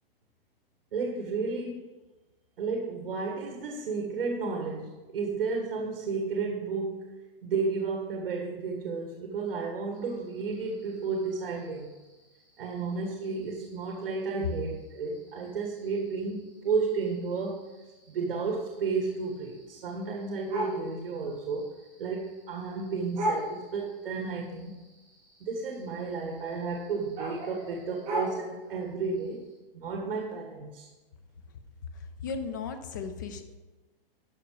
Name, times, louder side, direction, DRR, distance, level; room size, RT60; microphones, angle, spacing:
voice 1, 0.9-1.9 2.6-7.2 7.4-11.9 12.6-17.7 18.1-21.7 22.0-24.7 25.4-29.4 29.7-30.9, right 4 dB, 70° right, 0 dB, 1.8 m, -32 dB
sound 1, 9.9-29.6, right 1 dB, 25° right, 3.1 m, -42 dB
voice 2, 32.2-33.6, left 5 dB, 20° left, 9 dB, 0.4 m, -36 dB
12.0 x 5.9 x 4.7 m, 1.1 s
hypercardioid pair, 175°, 29 cm